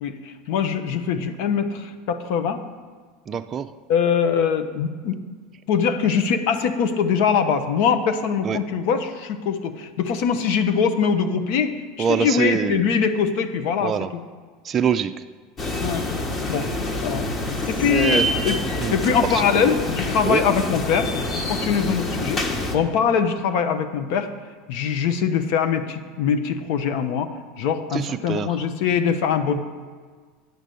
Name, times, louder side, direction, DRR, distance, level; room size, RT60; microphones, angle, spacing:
voice 1, 0.0-2.6 3.9-5.2 5.7-14.2 15.8-16.1 16.5-16.7 17.0-17.3 17.7-18.6 18.9-22.4 22.7-24.3 24.7-27.3 27.6-29.6, left 7 dB, 65° left, 8 dB, 0.8 m, -22 dB
voice 2, 3.3-3.7 8.4-8.6 12.0-12.8 13.8-14.1 14.6-15.1 17.8-19.0 19.3-19.7 20.2-20.5 27.9-28.6, right 7 dB, 35° right, 8 dB, 0.4 m, -25 dB
sound 1, 15.6-22.8, left 2 dB, 35° left, 1.4 m, -26 dB
9.3 x 6.2 x 6.8 m, 1.5 s
hypercardioid pair, 95°, 0 cm